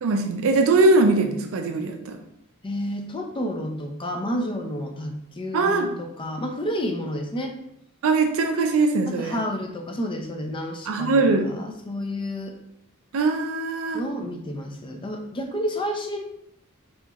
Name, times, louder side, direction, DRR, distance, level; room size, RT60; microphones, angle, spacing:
voice 1, 0.0-2.2 5.5-5.9 8.0-9.4 10.9-11.5 13.1-14.0, right 3 dB, 65° right, 4 dB, 0.4 m, -21 dB
voice 2, 2.6-7.6 9.1-12.6 13.9-16.2, equal, 25° left, 4 dB, 0.4 m, -30 dB
4.2 x 2.9 x 2.3 m, 0.76 s
head